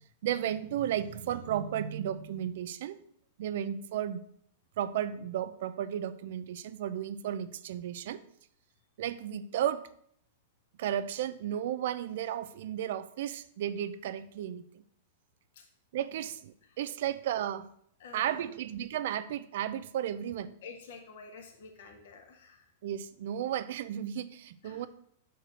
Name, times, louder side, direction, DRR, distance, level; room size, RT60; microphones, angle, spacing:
voice 1, 0.2-3.0 3.4-4.2 4.8-8.2 9.0-9.8 10.8-14.6 15.9-17.7 18.1-20.5 22.8-24.9, right 10 dB, 65° right, 14 dB, 0.5 m, -34 dB
voice 2, 18.0-18.5 20.6-22.6 24.6-24.9, left 4 dB, 70° left, 2 dB, 1.4 m, -49 dB
6.6 x 4.5 x 6.4 m, 0.67 s
hypercardioid pair, 130°, 0 cm